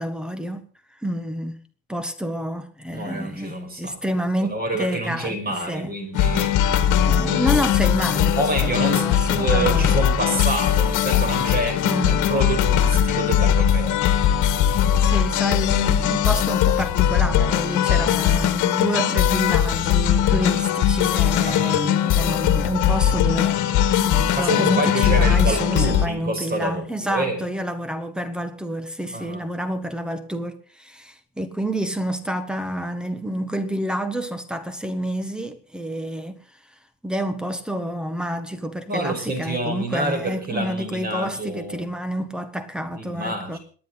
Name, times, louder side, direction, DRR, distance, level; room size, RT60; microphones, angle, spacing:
voice 1, 0.0-1.6 1.9-5.9 7.0-9.9 10.3-10.5 11.8-12.3 15.0-23.6 24.0-36.4 37.0-43.6, equal, ahead, 1.5 m, -28 dB
voice 2, 2.9-4.0 4.4-6.6 8.4-14.0 17.9-18.3 21.4-21.8 24.3-27.4 29.1-29.4 38.9-41.9 43.0-43.6, right 2 dB, 25° right, 5.3 m, -28 dB
sound 1, 6.1-26.1, left 10 dB, 60° left, 1.9 m, -20 dB
26.5 x 10.5 x 4.1 m
cardioid pair, 140°, 34 cm